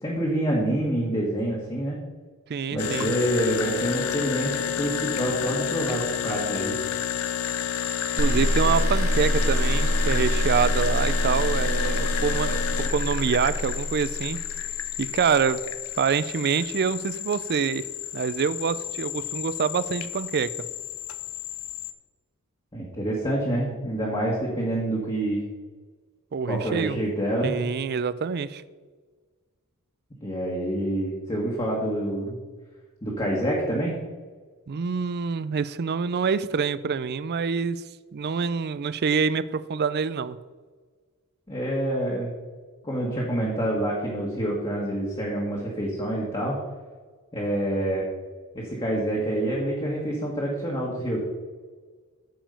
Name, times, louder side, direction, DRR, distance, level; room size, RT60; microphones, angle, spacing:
voice 1, 0.0-2.0 2.7-6.8 22.7-25.4 26.4-27.5 30.2-32.4 33.0-33.9 41.5-42.3 42.8-46.6 47.3-48.0 48.5-51.2, right 1 dB, 25° left, -4 dB, 1.7 m, -27 dB
voice 2, 2.5-3.1 8.2-12.6 12.9-14.4 15.0-15.6 16.0-17.9 18.1-20.5 26.3-27.0 27.4-28.6 34.7-37.8 38.1-40.4, right 6 dB, 45° right, 16 dB, 0.4 m, -26 dB
sound 1, 2.8-21.9, left 9 dB, 70° left, 0.6 m, -31 dB
sound 2, 8.2-15.3, equal, 70° right, 3.1 m, -26 dB
8.9 x 5.1 x 6.9 m, 1.4 s
head